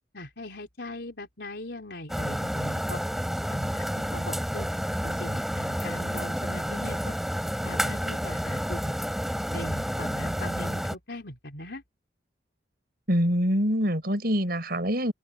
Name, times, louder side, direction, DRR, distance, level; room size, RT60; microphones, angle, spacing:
voice 1, 0.1-3.0 3.5-4.7 5.0-7.2 7.6-8.9 9.5-11.8, left 1 dB, 65° left, 4.5 m, -39 dB
sound 1, 2.1-11.0, equal, ahead, 7.7 m, -30 dB
voice 2, 13.1-15.1, equal, 55° right, 6.7 m, -25 dB
open air
head